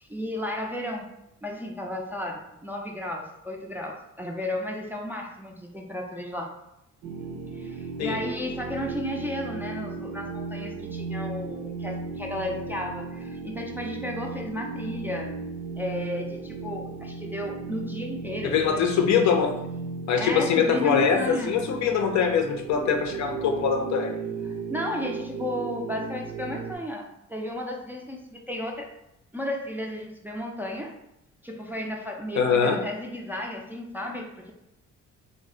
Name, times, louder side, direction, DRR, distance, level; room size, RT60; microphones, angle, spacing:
voice 1, 0.0-1.1 1.4-6.6 7.5-15.4 15.8-19.1 20.2-21.6 24.4-28.9 29.3-30.9 31.4-34.5, left 1 dB, 5° right, 0 dB, 0.3 m, -33 dB
sound 1, 7.0-26.8, right 4 dB, 65° right, 0.6 m, -36 dB
voice 2, 18.4-19.5 20.1-24.1 32.4-32.8, left 6 dB, 65° left, 4 dB, 0.5 m, -23 dB
2.4 x 2.0 x 3.6 m, 0.85 s
cardioid pair, 90°, 30 cm